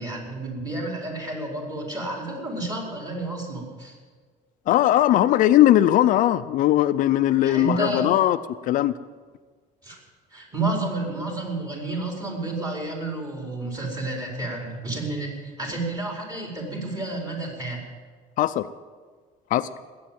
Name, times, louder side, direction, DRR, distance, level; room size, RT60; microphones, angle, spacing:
voice 1, 0.0-3.9 7.4-8.2 9.8-10.0 10.3-17.8, right 2 dB, 25° right, -1 dB, 4.6 m, -30 dB
voice 2, 4.7-8.4 8.7-8.9 18.4-18.7 19.5-19.7, left 13 dB, 60° left, 11 dB, 0.5 m, -19 dB
20.0 x 8.6 x 7.6 m, 1.5 s
cardioid pair, 135°, 15 cm